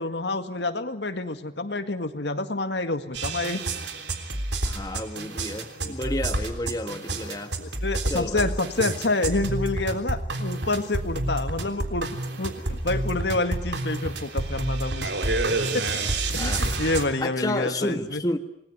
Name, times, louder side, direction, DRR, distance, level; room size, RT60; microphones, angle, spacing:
voice 1, 0.0-3.6 5.8-6.2 7.6-15.1 15.7-15.9 16.3-18.2, left 2 dB, 80° left, 8 dB, 1.9 m, -28 dB
sound 1, 3.1-17.0, right 2 dB, 85° right, 3.5 m, -29 dB
voice 2, 4.6-7.5 8.1-8.5 16.4-18.4, left 1 dB, 20° left, 7 dB, 1.5 m, -31 dB
28.5 x 20.0 x 9.6 m, 0.78 s
head